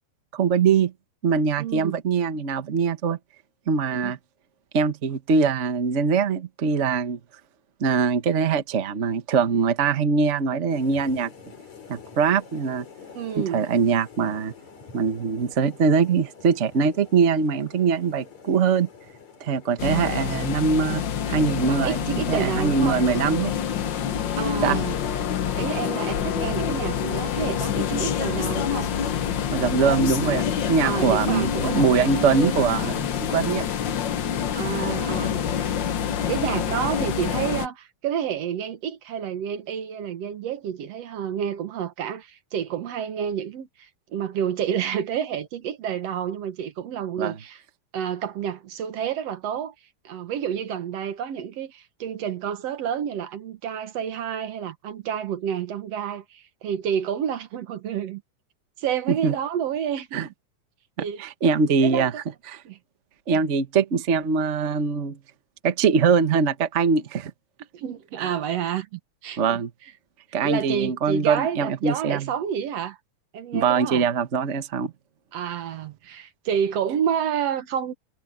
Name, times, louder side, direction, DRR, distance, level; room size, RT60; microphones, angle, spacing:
voice 1, 0.3-0.9 1.2-3.2 3.7-4.2 4.7-7.2 7.8-11.3 11.9-12.8 13.4-14.5 14.9-18.9 19.4-23.5 24.6-24.8 29.5-33.7 47.2-47.3 59.1-59.3 60.1-60.3 61.2-62.1 62.5-62.6 63.3-65.2 65.6-67.3 68.2-68.3 69.4-69.7 70.3-72.3 73.5-74.9, right 5 dB, 85° right, 0.6 m, -22 dB
voice 2, 1.6-2.0 4.0-4.1 13.2-13.7 21.7-23.0 24.4-25.0 25.6-28.9 30.8-32.6 34.5-35.8 36.3-47.6 47.9-49.7 50.0-58.2 58.8-60.3 61.0-61.2 61.8-62.1 62.7-62.8 63.3-63.4 67.7-69.6 70.4-73.0 73.3-74.1 75.3-77.9, right 8 dB, 60° right, 2.1 m, -29 dB
sound 1, 10.7-27.4, left 6 dB, 60° left, 5.7 m, -48 dB
sound 2, 19.8-37.7, left 8 dB, 80° left, 1.0 m, -27 dB
omnidirectional pair, 3.6 m